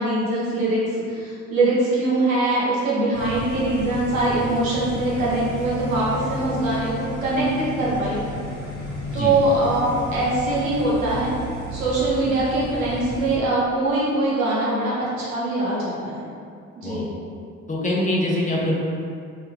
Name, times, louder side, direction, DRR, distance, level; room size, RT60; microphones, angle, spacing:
voice 1, 0.0-8.2 9.1-11.3 11.7-16.2 16.8-17.1, right 2 dB, 85° right, -7 dB, 0.7 m, -22 dB
sound 1, 3.1-13.4, left 1 dB, 40° left, 1.0 m, -33 dB
voice 2, 17.7-18.7, left 1 dB, 20° left, -4 dB, 0.7 m, -24 dB
3.0 x 2.4 x 3.3 m, 2.4 s
figure-of-eight pair, 45°, 40 cm